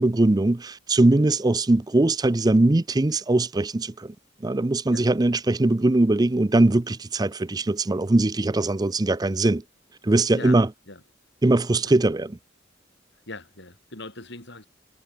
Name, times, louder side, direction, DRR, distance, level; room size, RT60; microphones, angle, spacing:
voice 1, 0.0-4.1 4.4-9.6 10.0-10.7 11.4-12.4, right 2 dB, 20° right, 0.5 m, -21 dB
voice 2, 13.3-14.7, left 2 dB, 60° left, 7.9 m, -40 dB
head